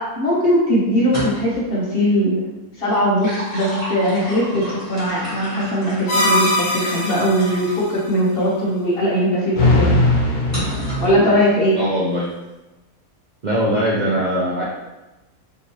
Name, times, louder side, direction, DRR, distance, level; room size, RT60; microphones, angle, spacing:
voice 1, 0.0-2.4 2.8-10.0 11.0-11.8, equal, 45° left, -5 dB, 1.0 m, -19 dB
sound 1, 1.0-1.7 2.9-7.8 8.4-8.5 10.5-11.2, right 1 dB, 10° left, 1.3 m, -31 dB
sound 2, 6.1-7.7 9.5-11.1, left 2 dB, 75° left, 1.3 m, -19 dB
voice 2, 11.8-12.3 13.4-14.6, right 1 dB, 90° right, -6 dB, 0.4 m, -21 dB
3.5 x 2.9 x 2.9 m, 1.0 s
omnidirectional pair, 1.6 m